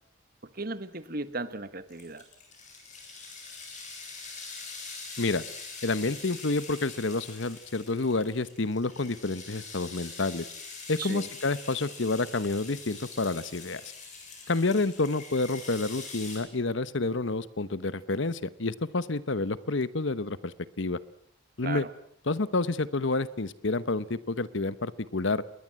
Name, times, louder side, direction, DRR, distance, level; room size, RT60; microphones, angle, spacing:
voice 1, 0.4-2.3 11.0-11.3 21.6-21.9, right 3 dB, 45° right, 13 dB, 1.4 m, -36 dB
sound 1, 1.9-16.4, left 4 dB, 35° left, 7.9 m, -44 dB
voice 2, 5.8-10.5 10.9-13.8 14.5-21.0 21.6-21.8 22.3-25.4, left 3 dB, 65° left, 16 dB, 1.0 m, -29 dB
27.5 x 21.0 x 7.6 m, 0.74 s
head